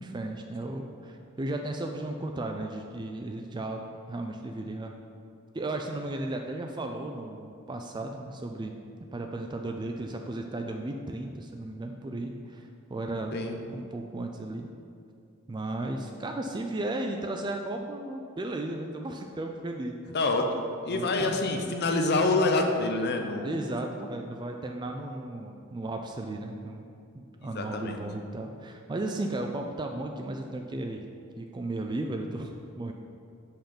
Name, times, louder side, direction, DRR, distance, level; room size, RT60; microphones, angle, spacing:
voice 1, 0.0-4.9 5.5-8.8 9.1-13.4 13.7-14.7 15.5-20.0 20.9-21.4 23.4-26.8 27.1-31.0 31.4-32.9, right 2 dB, 20° right, 3 dB, 0.3 m, -35 dB
voice 2, 20.1-23.6 27.4-28.0, left 2 dB, 50° left, 4 dB, 0.6 m, -27 dB
5.6 x 5.6 x 5.1 m, 2.4 s
head